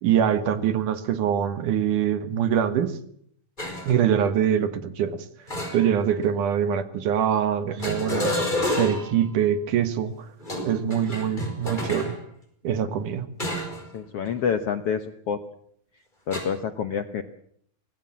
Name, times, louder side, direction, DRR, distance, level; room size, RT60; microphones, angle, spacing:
voice 1, 0.0-3.0 3.9-5.3 5.7-10.2 10.6-12.2 12.6-13.3, right 9 dB, 70° right, 11 dB, 2.7 m, -24 dB
sound 1, 3.6-3.9 5.5-6.2 7.8-9.2 10.4-12.1 13.4-13.9 14.2-14.5 16.3-16.4, left 1 dB, 10° left, 5.4 m, -29 dB
voice 2, 13.9-15.4 16.3-17.2, left 7 dB, 70° left, 9 dB, 1.4 m, -27 dB
24.5 x 18.5 x 7.4 m, 0.66 s
omnidirectional pair, 4.0 m